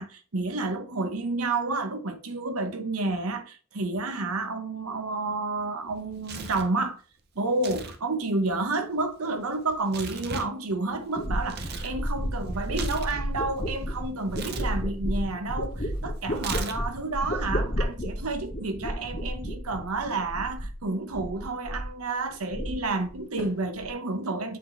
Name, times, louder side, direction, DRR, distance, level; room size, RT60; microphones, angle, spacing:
voice 1, 0.0-7.0 7.4-24.6, right 3 dB, 85° right, 1.0 m, -30 dB
Tearing, 5.9-6.7 7.5-8.0 8.2-11.9 12.3-13.8 14.3-14.7 16.3-17.0, right 5 dB, 50° right, 0.7 m, -38 dB
sound 1, 11.2-20.8 21.1-22.0 22.3-23.1 23.4-23.9, equal, 40° left, 1.8 m, -32 dB
7.6 x 4.0 x 3.2 m
head